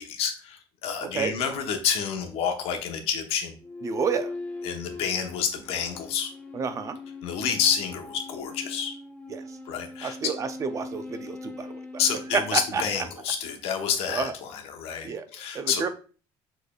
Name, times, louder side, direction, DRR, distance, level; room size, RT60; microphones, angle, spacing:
voice 1, 0.0-3.5 4.6-6.3 7.2-8.9 9.6-10.3 12.0-15.8, left 7 dB, 75° left, 5 dB, 0.9 m, -29 dB
sound 1, 3.6-13.2, left 2 dB, 15° left, 0.7 m, -40 dB
voice 2, 3.8-4.3 6.5-7.0 9.3-9.4 10.0-11.8 12.5-12.8 14.1-14.3 15.0-15.2 15.5-15.9, right 6 dB, 30° right, 10 dB, 0.4 m, -30 dB
6.3 x 3.3 x 2.3 m, 0.38 s
cardioid pair, 150°, 10 cm